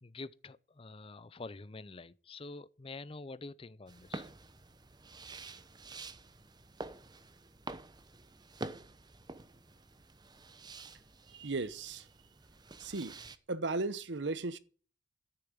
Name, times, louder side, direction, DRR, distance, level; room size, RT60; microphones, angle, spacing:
voice 1, 0.0-4.3, left 3 dB, 30° left, 0.5 m, -47 dB
sound 1, 3.9-13.4, right 2 dB, 25° right, 0.7 m, -48 dB
voice 2, 11.3-12.1 12.8-13.2 13.5-14.6, right 3 dB, 75° right, 1.0 m, -36 dB
13.0 x 7.0 x 8.7 m
head